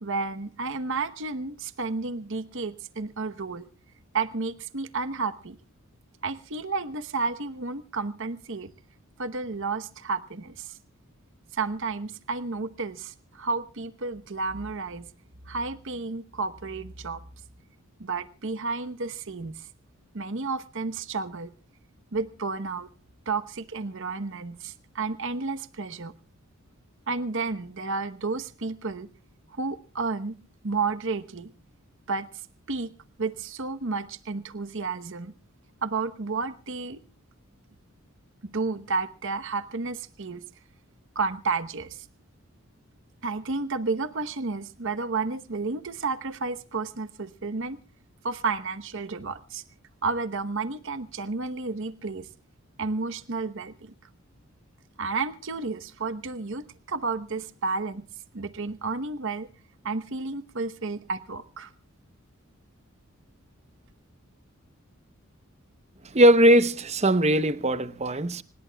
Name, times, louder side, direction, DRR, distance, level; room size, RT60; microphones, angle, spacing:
voice 1, 0.0-3.6 4.1-5.6 6.2-8.7 9.2-10.7 11.5-15.1 15.5-17.2 18.0-19.5 20.1-21.5 22.1-22.9 23.3-26.1 27.1-29.1 29.6-30.4 30.6-31.5 32.1-32.3 32.7-32.9 33.2-35.3 35.8-37.0 38.4-40.4 41.1-42.0 43.2-47.8 48.2-49.6 50.0-52.3 52.8-53.9 55.0-58.1 58.3-59.5 59.8-61.7, right 4 dB, 60° right, 1.0 m, -31 dB
voice 2, 66.1-68.4, right 1 dB, 30° right, 0.8 m, -20 dB
26.0 x 20.0 x 2.3 m
head